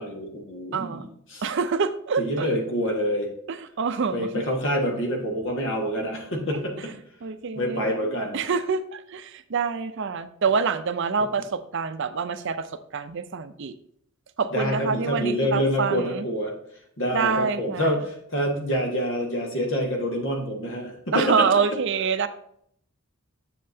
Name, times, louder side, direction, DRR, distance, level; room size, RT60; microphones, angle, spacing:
voice 1, 0.0-1.4 2.2-3.3 4.1-6.7 7.5-8.4 14.5-16.5 17.0-21.4, equal, 60° left, 2 dB, 1.6 m, -26 dB
voice 2, 0.7-1.1 1.4-2.5 3.5-4.3 6.5-6.8 7.2-8.0 8.3-13.7 14.4-16.3 17.1-17.9 21.1-22.3, right 5 dB, 55° right, 11 dB, 0.5 m, -26 dB
7.5 x 7.5 x 2.7 m, 0.68 s
head